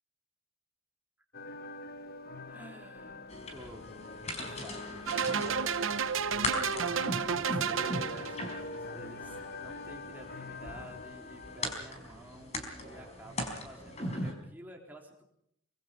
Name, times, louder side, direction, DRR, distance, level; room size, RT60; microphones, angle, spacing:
sound 1, 1.3-11.7, left 3 dB, 50° left, 1.1 m, -45 dB
voice 1, 2.5-3.9 4.3-5.4 5.8-15.2, right 1 dB, 10° right, 0 dB, 3.8 m, -51 dB
sound 2, 3.3-14.3, left 1 dB, 30° left, 4.3 m, -40 dB
sound 3, 5.1-8.5, right 6 dB, 75° right, 1.0 m, -31 dB
24.5 x 23.5 x 5.4 m, 0.73 s
head